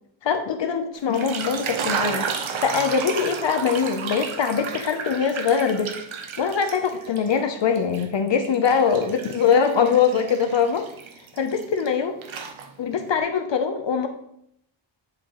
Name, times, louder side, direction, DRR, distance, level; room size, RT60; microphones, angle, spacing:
voice 1, 0.2-2.3 2.6-5.9 6.4-10.9 11.4-12.2 12.8-14.1, left 6 dB, 65° left, 7 dB, 0.7 m, -22 dB
sound 1, 1.0-7.4 7.7-11.9 12.2-13.0, right 6 dB, 80° right, 0.8 m, -32 dB
9.0 x 4.9 x 3.0 m, 0.74 s
wide cardioid pair, 85°, 47 cm